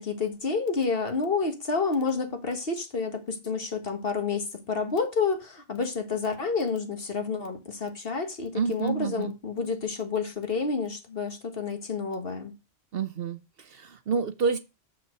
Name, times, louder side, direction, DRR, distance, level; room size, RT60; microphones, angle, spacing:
voice 1, 0.0-12.5, left 4 dB, 50° left, 1.7 m, -29 dB
voice 2, 8.5-9.3 12.9-14.6, right 5 dB, 60° right, 0.8 m, -29 dB
7.5 x 5.6 x 6.4 m
omnidirectional pair, 1.2 m